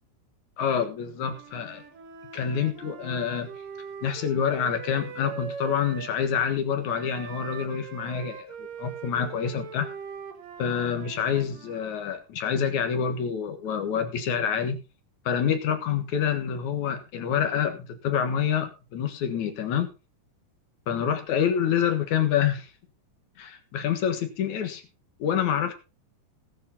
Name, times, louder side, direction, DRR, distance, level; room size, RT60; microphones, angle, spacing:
voice 1, 0.6-1.8 2.3-3.5 4.0-9.9 10.6-14.8 15.3-19.9 20.9-22.7 23.4-24.8 25.2-25.7, left 8 dB, 65° left, 8 dB, 2.8 m, -27 dB
Wind instrument woodwind instrument, 1.1-6.2 6.9-11.8, right 5 dB, 80° right, 3.3 m, -41 dB
18.5 x 6.7 x 4.2 m, 0.30 s
omnidirectional pair, 3.7 m